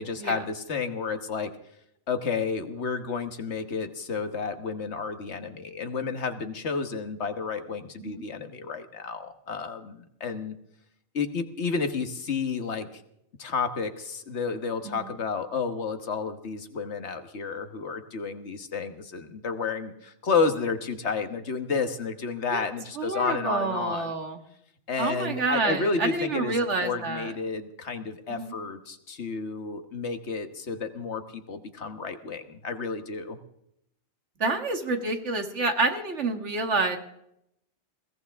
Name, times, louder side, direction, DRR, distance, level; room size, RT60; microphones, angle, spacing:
voice 1, 0.0-1.5 2.1-10.5 11.1-13.0 13.4-24.1 24.9-33.4, left 5 dB, 75° left, 8 dB, 1.6 m, -31 dB
voice 2, 23.0-24.4 25.0-27.3 28.3-28.5 34.4-37.0, right 3 dB, 90° right, 5 dB, 2.1 m, -28 dB
21.0 x 17.0 x 3.6 m, 0.77 s
omnidirectional pair, 1.2 m